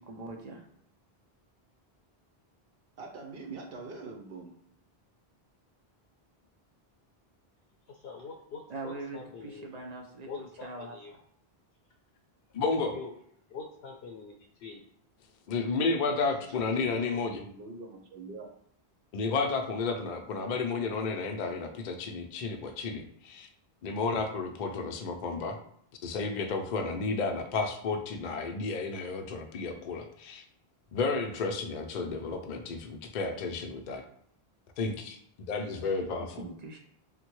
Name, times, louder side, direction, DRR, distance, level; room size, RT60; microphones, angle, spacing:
voice 1, 0.1-0.6 8.7-11.0 35.7-35.9 36.2-36.8, right 2 dB, 55° right, 2 dB, 0.5 m, -42 dB
voice 2, 3.0-4.5 16.3-18.5, right 3 dB, 70° right, 1 dB, 0.9 m, -44 dB
voice 3, 7.9-9.7 10.3-11.2 12.9-13.1 13.5-14.8, left 4 dB, 80° left, 0 dB, 0.8 m, -44 dB
voice 4, 12.5-13.0 15.5-17.4 19.1-23.5 23.8-25.6 26.0-30.4 30.9-34.0 34.8-36.4, left 4 dB, 55° left, 4 dB, 0.6 m, -32 dB
3.5 x 2.2 x 3.0 m, 0.67 s
omnidirectional pair, 1.0 m